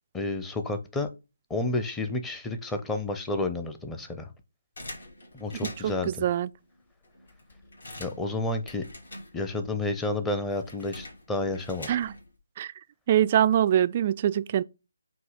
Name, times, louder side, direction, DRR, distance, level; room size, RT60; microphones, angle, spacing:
voice 1, 0.1-1.1 1.5-4.3 5.3-6.1 8.0-8.8 9.3-11.9, left 2 dB, 10° left, 0.8 m, -30 dB
sound 1, 4.8-6.1 6.7-6.8 7.0-9.7 10.0-12.4, left 2 dB, 60° left, 2.5 m, -45 dB
voice 2, 5.6-6.5 11.9-12.1 12.6-12.7 13.1-14.6, right 10 dB, 30° right, 0.3 m, -24 dB
7.8 x 2.8 x 5.5 m
figure-of-eight pair, 145°, 0 cm